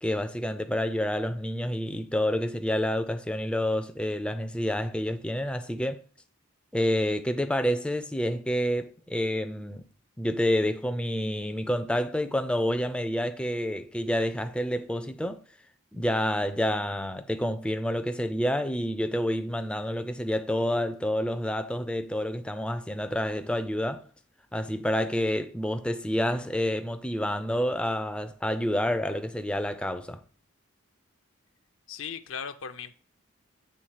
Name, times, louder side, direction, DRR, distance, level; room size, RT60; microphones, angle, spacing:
voice 1, 0.0-6.0 6.7-9.8 10.2-15.4 15.9-24.1 24.5-30.2, equal, 5° left, 0.3 m, -28 dB
voice 2, 31.9-32.9, left 7 dB, 65° left, 0.5 m, -37 dB
7.7 x 3.5 x 4.7 m
head